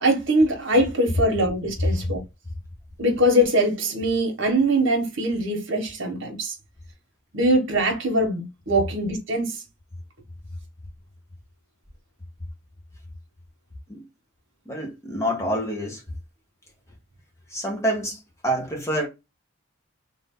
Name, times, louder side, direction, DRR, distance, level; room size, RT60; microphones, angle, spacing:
voice 1, 0.0-2.2 3.0-6.5 7.3-9.6, right 1 dB, 60° right, 1.3 m, -22 dB
voice 2, 14.7-16.0 17.5-19.1, right 1 dB, 15° left, 1.1 m, -27 dB
3.4 x 2.8 x 3.7 m
head